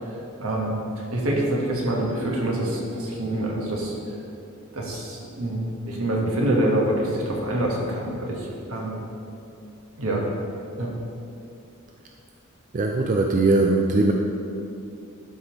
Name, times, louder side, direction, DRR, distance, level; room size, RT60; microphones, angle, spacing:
voice 1, 0.4-4.0 4.7-9.0 10.0-10.2 10.8-10.9, right 1 dB, 75° right, -2 dB, 1.4 m, -26 dB
voice 2, 12.7-14.1, right 2 dB, 35° right, 1 dB, 0.4 m, -20 dB
12.0 x 5.1 x 3.0 m, 2.7 s
head